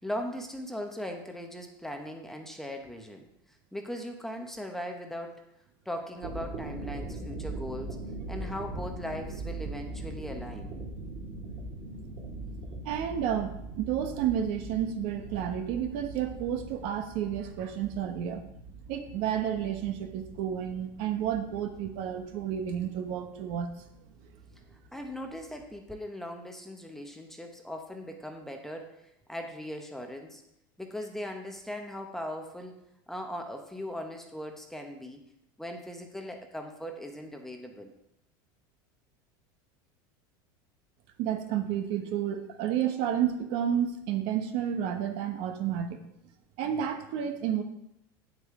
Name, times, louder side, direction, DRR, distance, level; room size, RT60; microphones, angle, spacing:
voice 1, 0.0-3.3 3.7-5.4 5.9-8.0 8.3-10.7 24.9-30.4 30.8-32.7 33.1-35.2 35.6-37.9, equal, 5° left, 3 dB, 0.9 m, -39 dB
sound 1, 6.0-25.7, right 2 dB, 40° right, 2.2 m, -42 dB
voice 2, 12.8-18.4 18.9-23.7 41.2-46.0 46.6-47.6, right 9 dB, 55° right, 7 dB, 1.0 m, -31 dB
9.1 x 7.9 x 3.7 m, 0.81 s
supercardioid pair, 145°, 11 cm